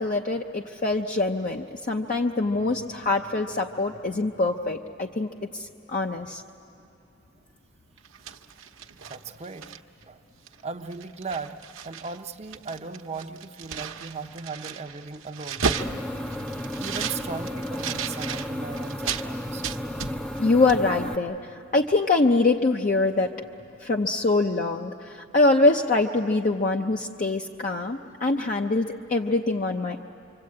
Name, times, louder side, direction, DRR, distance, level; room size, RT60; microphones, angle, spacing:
voice 1, 0.0-6.4 16.3-16.5 20.4-23.3 23.8-30.0, left 2 dB, 40° left, 2 dB, 0.7 m, -24 dB
sound 1, 8.0-10.0 10.5-10.6 10.9-12.2 12.4-19.3 19.6-20.4 20.7-20.8, right 6 dB, 75° right, 1.1 m, -34 dB
voice 2, 9.1-9.7 10.1-10.2 10.6-11.6 11.8-15.7 16.8-19.6, right 4 dB, 35° right, 8 dB, 0.7 m, -37 dB
sound 2, 15.8-21.2, left 1 dB, 5° left, 0.6 m, -33 dB
26.0 x 25.5 x 8.6 m, 2.6 s
head